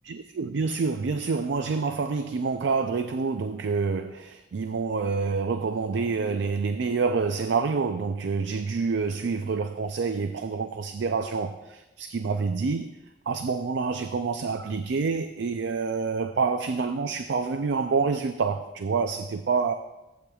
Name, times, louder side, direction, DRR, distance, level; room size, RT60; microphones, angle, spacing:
voice 1, 0.0-12.9 13.3-19.7, right 4 dB, 85° right, 9 dB, 0.4 m, -27 dB
15.0 x 8.4 x 2.4 m, 1.0 s
head